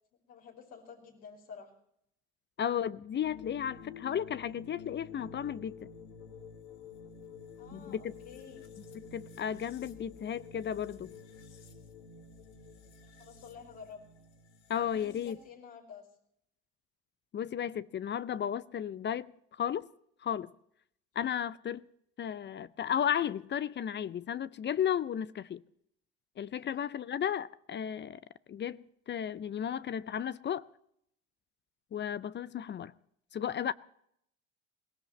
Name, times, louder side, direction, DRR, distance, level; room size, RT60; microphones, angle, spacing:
voice 1, 0.2-1.7 7.6-8.7 13.0-14.1 14.9-16.1 26.5-26.9, left 6 dB, 70° left, 5.0 m, -51 dB
voice 2, 2.6-5.9 7.7-8.1 9.1-11.1 14.7-15.4 17.3-19.3 19.6-19.9 20.2-20.5 21.2-21.9 22.2-25.6 26.4-28.2 28.5-30.7 31.9-32.9 33.3-33.7, left 9 dB, 35° left, 0.6 m, -34 dB
sound 1, 3.2-15.5, left 5 dB, 85° left, 1.6 m, -50 dB
23.0 x 18.0 x 3.2 m
hypercardioid pair, 65°, 34 cm